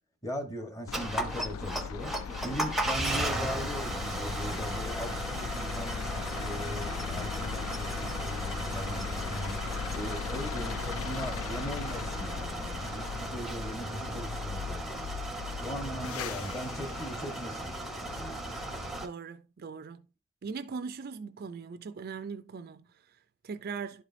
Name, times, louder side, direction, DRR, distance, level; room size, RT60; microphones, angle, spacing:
voice 1, 0.2-2.1 2.4-9.6 9.9-15.1 15.6-17.8 18.1-18.4, equal, 15° left, 1.1 m, -39 dB
sound 1, 0.9-19.0, left 7 dB, 75° left, 0.3 m, -38 dB
sound 2, 0.9-19.1, right 2 dB, ahead, 0.7 m, -36 dB
sound 3, 8.3-15.2, equal, 55° left, 1.8 m, -48 dB
voice 2, 18.9-20.1 20.4-24.0, right 5 dB, 45° right, 0.4 m, -40 dB
11.0 x 4.9 x 2.5 m
head